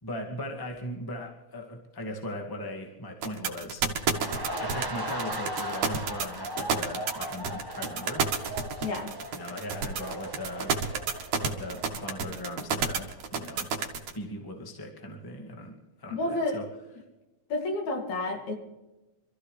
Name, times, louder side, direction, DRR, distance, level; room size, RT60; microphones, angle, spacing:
voice 1, 0.0-3.8 4.6-8.3 9.3-10.8 11.4-13.7 14.1-16.7, left 1 dB, 10° left, 1 dB, 1.7 m, -39 dB
sound 1, 3.2-14.1, right 6 dB, 75° right, 2.8 m, -29 dB
sound 2, 4.0-12.9 13.2-13.4, equal, 20° right, 0.5 m, -38 dB
voice 2, 8.8-9.1 16.1-16.6 17.5-18.5, left 2 dB, 70° left, 1 dB, 3.9 m, -30 dB
26.5 x 14.0 x 3.4 m, 1.1 s
omnidirectional pair, 3.5 m